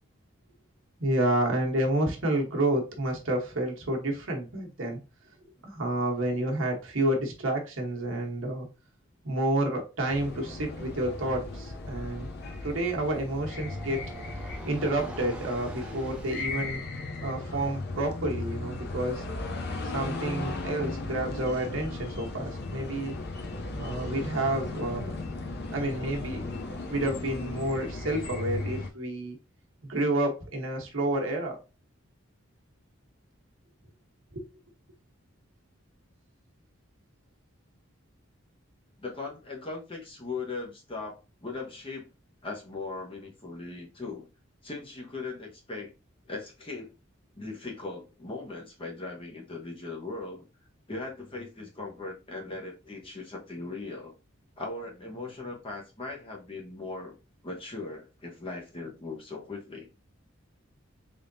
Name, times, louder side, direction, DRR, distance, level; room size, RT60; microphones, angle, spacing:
voice 1, 1.0-5.0 5.6-8.7 9.2-12.3 12.6-14.0 14.6-16.8 17.2-19.2 19.8-23.2 23.7-25.1 25.7-26.4 26.9-29.4 29.8-31.6 34.3-34.4, right 1 dB, 70° right, 1.1 m, -29 dB
sound 1, 10.1-28.9, left 2 dB, 50° left, 0.6 m, -36 dB
sound 2, 11.2-16.6, right 1 dB, 5° right, 0.5 m, -46 dB
voice 2, 39.0-42.1 42.4-44.3 44.6-45.9 46.3-46.9 47.3-50.4 50.9-54.1 54.6-57.1 57.4-59.9, left 3 dB, 25° left, 1.0 m, -39 dB
3.7 x 3.5 x 2.7 m
head